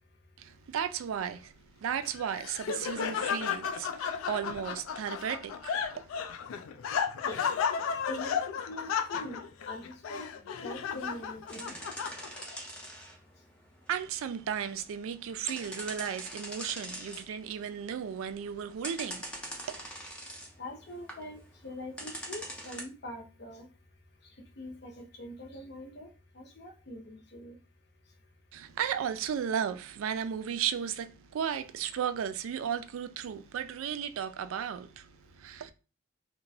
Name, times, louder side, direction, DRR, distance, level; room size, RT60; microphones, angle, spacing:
voice 1, 0.4-1.5 1.8-6.2 13.9-19.8 28.5-35.7, right 8 dB, 85° right, 0.3 m, -35 dB
Laughter, 2.0-12.6, left 7 dB, 90° left, 0.3 m, -34 dB
voice 2, 8.1-10.3 10.6-11.7 20.6-23.7 24.6-26.1 26.3-27.6, left 1 dB, 55° left, 0.6 m, -43 dB
sound 1, 11.5-13.3 13.6-15.0 15.5-17.4 17.7-18.3 18.8-20.5 20.9-21.2 22.0-22.8, equal, 5° left, 0.4 m, -42 dB
2.9 x 2.1 x 2.6 m
head